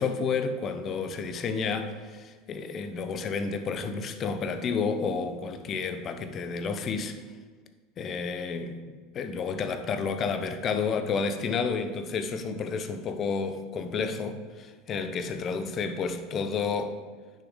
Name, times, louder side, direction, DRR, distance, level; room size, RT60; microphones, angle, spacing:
voice 1, 0.0-7.2 8.0-8.8 9.1-16.9, left 5 dB, 40° left, 0.8 m, -30 dB
9.8 x 6.4 x 3.9 m
hypercardioid pair, 80°, 0 cm